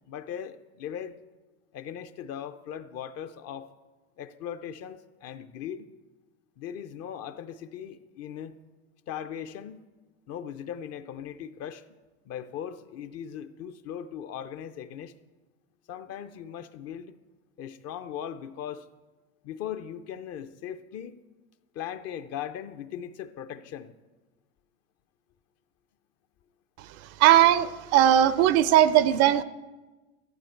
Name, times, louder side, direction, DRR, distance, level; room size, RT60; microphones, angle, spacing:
voice 1, 0.1-1.2 1.7-3.7 4.2-5.9 6.6-8.6 9.1-9.8 10.3-11.8 12.2-15.1 15.9-17.2 17.6-18.9 19.4-21.2 21.7-23.9, left 9 dB, 40° left, 11 dB, 0.7 m, -39 dB
voice 2, 26.8-29.4, right 11 dB, 40° right, 16 dB, 0.5 m, -20 dB
14.5 x 8.9 x 4.5 m, 1.2 s
hypercardioid pair, 95°, 40 cm